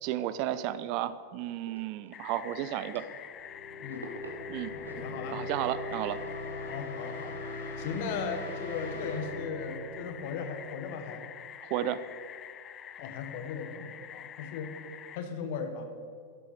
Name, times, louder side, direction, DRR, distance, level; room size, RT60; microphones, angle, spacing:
voice 1, 0.0-3.0 4.5-4.7 5.3-6.2 11.7-12.0, right 12 dB, 45° right, 14 dB, 0.4 m, -33 dB
sound 1, 1.5-3.5 3.8-6.4, right 2 dB, 75° right, 1.2 m, -49 dB
sound 2, 2.1-15.2, left 9 dB, 30° left, 0.4 m, -46 dB
Bright riser, 3.3-11.0, left 2 dB, 75° left, 2.4 m, -41 dB
voice 2, 4.7-5.4 6.7-7.4 7.8-11.2 13.0-14.8 15.1-15.9, left 5 dB, 50° left, 6 dB, 1.2 m, -37 dB
12.5 x 7.7 x 4.8 m, 2.3 s
figure-of-eight pair, 90°, 0 cm